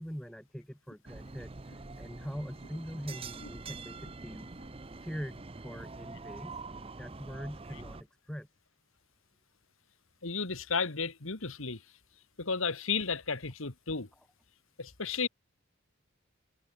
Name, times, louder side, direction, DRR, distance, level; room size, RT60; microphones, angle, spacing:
voice 1, 0.0-4.5 5.0-6.6 7.0-8.5 14.2-14.3, equal, 5° left, 4.7 m, -43 dB
sound 1, 1.1-8.0, right 3 dB, 25° right, 0.7 m, -45 dB
voice 2, 10.2-11.8 12.4-14.1 14.8-15.3, left 5 dB, 65° left, 2.1 m, -33 dB
head